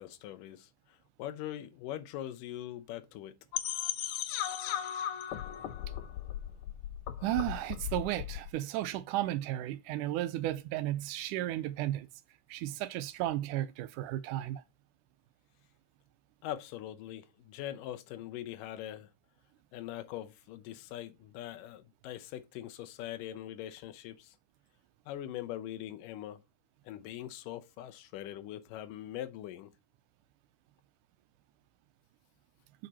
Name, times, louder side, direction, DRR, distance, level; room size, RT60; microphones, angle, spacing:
voice 1, 0.0-3.4 16.4-19.1 19.7-24.4 25.1-26.4 26.9-29.7, left 12 dB, 90° left, 2.4 m, -42 dB
sound 1, 3.5-8.5, left 11 dB, 70° left, 2.1 m, -37 dB
voice 2, 7.2-12.1 12.5-14.6, right 14 dB, 80° right, 2.1 m, -34 dB
8.1 x 5.2 x 4.2 m
omnidirectional pair, 3.7 m